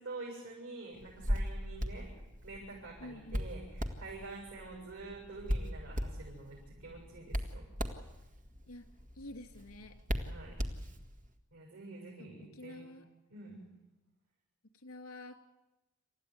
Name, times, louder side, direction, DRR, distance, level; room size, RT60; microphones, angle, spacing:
voice 1, 0.0-2.1 2.4-7.7 10.2-10.6 11.5-12.9 13.3-13.6, right 3 dB, 90° right, -3 dB, 7.5 m, -47 dB
Hands, 1.0-11.3, equal, 35° right, 1.9 m, -39 dB
voice 2, 3.0-3.4 8.7-8.9 9.1-9.9 12.2-13.0 14.7-15.4, left 1 dB, 85° left, 8 dB, 2.8 m, -49 dB
28.0 x 15.0 x 9.7 m, 1.0 s
head